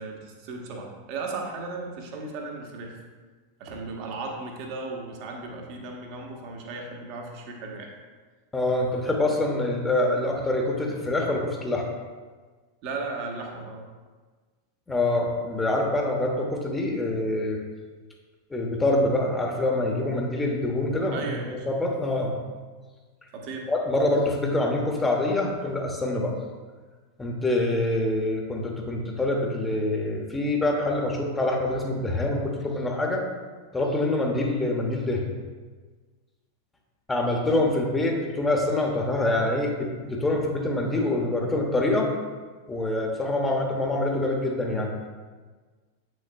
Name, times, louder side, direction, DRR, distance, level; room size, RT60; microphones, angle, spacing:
voice 1, 0.0-3.0 3.6-7.9 12.8-13.8 21.1-21.7 23.3-23.7, right 3 dB, 45° right, 1 dB, 1.2 m, -36 dB
voice 2, 8.5-11.8 14.9-17.6 18.5-21.2 21.7-22.3 23.7-26.3 27.2-33.2 33.7-35.2 37.1-42.1 42.7-45.1, left 2 dB, 10° left, 1 dB, 1.1 m, -25 dB
8.2 x 6.5 x 2.3 m, 1.4 s
figure-of-eight pair, 90°, 0 cm